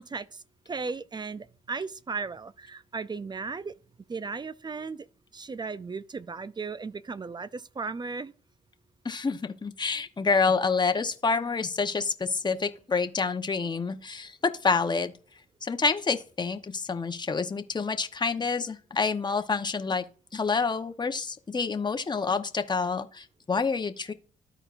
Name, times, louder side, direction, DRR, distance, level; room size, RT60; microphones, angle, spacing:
voice 1, 0.0-3.7 4.1-5.1 5.3-8.3, right 4 dB, 30° right, 0.5 m, -36 dB
voice 2, 9.0-14.3 14.6-15.1 15.6-20.0 20.3-24.1, left 4 dB, 30° left, 0.9 m, -28 dB
13.0 x 4.4 x 2.5 m
supercardioid pair, 55°, 16 cm